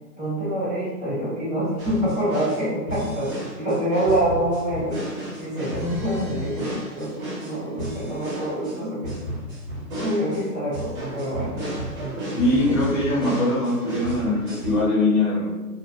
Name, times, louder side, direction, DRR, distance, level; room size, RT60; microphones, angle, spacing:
voice 1, 0.2-5.0 5.4-7.1 7.4-9.2 10.0-11.5 12.6-12.8, right 1 dB, 10° left, -19 dB, 0.6 m, -26 dB
sound 1, 1.8-14.8, right 1 dB, 30° right, 1.0 m, -33 dB
voice 2, 12.4-15.5, left 2 dB, 50° left, -9 dB, 1.2 m, -22 dB
2.6 x 2.2 x 2.4 m, 1.1 s
hypercardioid pair, 160°, 49 cm